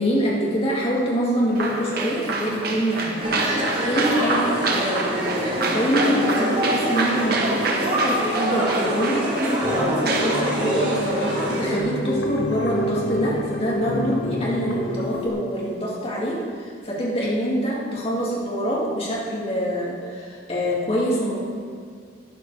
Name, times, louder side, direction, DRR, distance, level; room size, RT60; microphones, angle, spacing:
voice 1, 0.0-3.3 3.8-9.3 9.8-21.4, equal, 35° left, -5 dB, 2.4 m, -25 dB
sound 1, 1.5-11.8, right 3 dB, 60° right, 1.4 m, -28 dB
sound 2, 3.2-11.8, equal, 30° right, 2.6 m, -25 dB
sound 3, 9.6-15.3, left 1 dB, 70° left, 1.3 m, -28 dB
12.0 x 10.0 x 4.9 m, 2.1 s
head